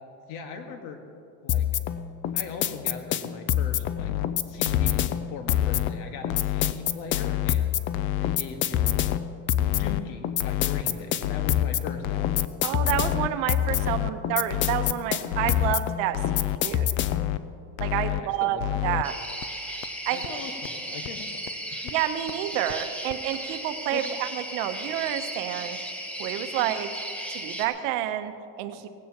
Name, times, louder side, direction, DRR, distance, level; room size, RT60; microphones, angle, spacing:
voice 1, 0.3-1.0 1.4-1.7 2.3-4.1 4.4-7.7 8.2-9.0 9.7-12.5 18.1-19.0 20.1-21.4 21.8-21.9 23.9-24.1 26.6-26.7, left 5 dB, 70° left, 4 dB, 1.8 m, -39 dB
sound 1, 1.5-17.3, left 11 dB, 30° left, 0.4 m, -27 dB
sound 2, 3.8-4.3 4.7-5.1 5.5-5.9 6.3-6.7 7.1-7.5 7.9-8.4 8.8-9.2 9.6-10.0 10.4-10.8 11.2-11.6 12.0-12.5 12.9-13.3 13.7-14.1 14.5-14.9 15.3-15.8 16.1-16.6 17.0-17.4 17.8-18.2 18.6-19.0 19.4-19.5 19.8-19.9 20.2-20.3 20.7-20.8 21.0-21.1 21.5-21.6 21.9-22.0 22.3-22.4 22.7-22.8 23.1-23.2, left 16 dB, 90° left, 0.6 m, -28 dB
voice 2, 12.6-16.9 17.8-19.1 20.1-20.4 21.9-25.8 26.2-26.9 27.3-28.9, right 12 dB, 80° right, 9 dB, 1.0 m, -29 dB
sound 3, 19.0-27.7, equal, 5° left, 1.3 m, -36 dB
18.0 x 16.0 x 3.0 m, 2.6 s
cardioid pair, 140°, 39 cm